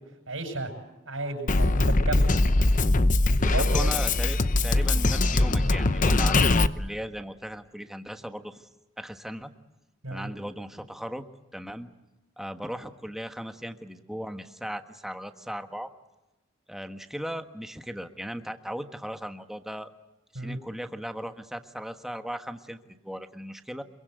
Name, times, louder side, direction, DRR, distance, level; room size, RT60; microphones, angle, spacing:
voice 1, 0.3-0.7 1.1-2.3 3.3-3.9 10.0-10.3 20.4-20.6, right 2 dB, 80° right, 4 dB, 7.3 m, -32 dB
Drum kit, 1.5-6.7, left 2 dB, 40° left, 0.9 m, -22 dB
voice 2, 3.4-4.4 4.6-8.7 9.0-9.5 10.1-11.2 11.5-11.9 12.4-15.9 16.7-19.9 20.3-23.8, equal, ahead, 7 dB, 1.4 m, -37 dB
26.5 x 23.0 x 8.1 m, 1.0 s
head